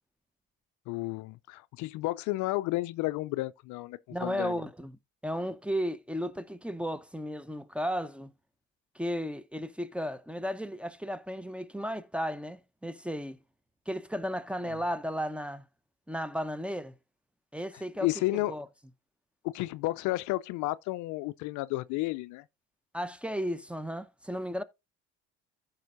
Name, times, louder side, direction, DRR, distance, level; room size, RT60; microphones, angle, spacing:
voice 1, 0.9-4.6 18.0-18.5 19.4-22.4, left 19 dB, 60° left, 0.5 m, -32 dB
voice 2, 4.1-5.0 5.2-8.3 8.9-13.4 13.9-15.6 16.1-16.9 17.5-18.7 22.9-24.6, equal, 5° right, 0.8 m, -34 dB
14.5 x 5.6 x 2.6 m
hypercardioid pair, 60°, 34 cm